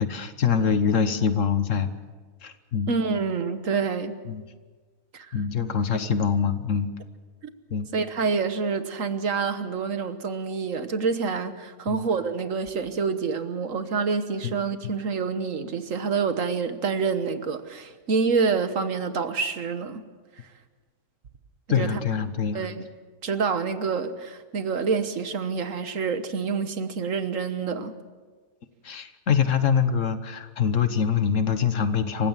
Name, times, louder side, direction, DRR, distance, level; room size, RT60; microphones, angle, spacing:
voice 1, 0.0-1.9 2.4-3.0 4.3-4.4 5.3-6.9 7.7-7.9 11.9-12.1 14.4-14.6 21.7-22.7 28.8-32.3, left 6 dB, 55° left, 11 dB, 1.4 m, -24 dB
voice 2, 2.9-4.2 5.1-5.4 7.9-20.0 21.7-22.0 22.5-22.9 23.2-27.9, right 5 dB, 55° right, 10 dB, 1.5 m, -27 dB
27.5 x 16.0 x 7.4 m, 1.4 s
omnidirectional pair, 1.7 m